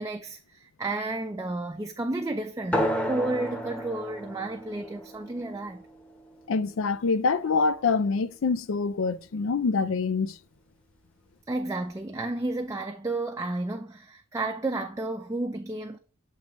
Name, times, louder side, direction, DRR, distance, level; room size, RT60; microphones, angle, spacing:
voice 1, 0.0-5.8 11.5-16.0, right 2 dB, 15° right, 0.4 m, -32 dB
sound 1, 2.7-7.8, equal, 5° left, 0.9 m, -33 dB
voice 2, 6.5-10.4, left 4 dB, 70° left, 0.4 m, -25 dB
7.5 x 3.3 x 4.1 m
head